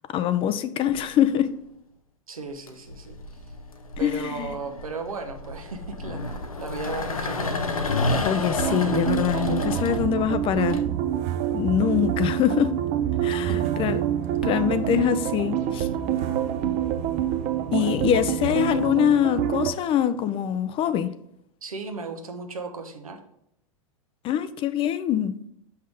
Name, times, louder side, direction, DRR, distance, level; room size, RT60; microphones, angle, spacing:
voice 1, 0.1-1.5 4.0-4.5 8.2-10.8 11.5-12.8 13.2-14.0 14.4-15.9 17.7-21.1 24.2-25.4, left 9 dB, 30° left, 0.5 m, -24 dB
sound 1, 0.9-1.4 2.5-10.8, left 2 dB, 90° left, 0.7 m, -30 dB
voice 2, 2.3-3.2 4.0-8.2 13.5-13.8 17.5-18.0 21.6-23.2, right 3 dB, 85° right, 1.0 m, -36 dB
sound 2, 8.6-19.7, right 10 dB, 40° right, 0.7 m, -26 dB
6.5 x 5.7 x 3.4 m
hypercardioid pair, 100°, 18 cm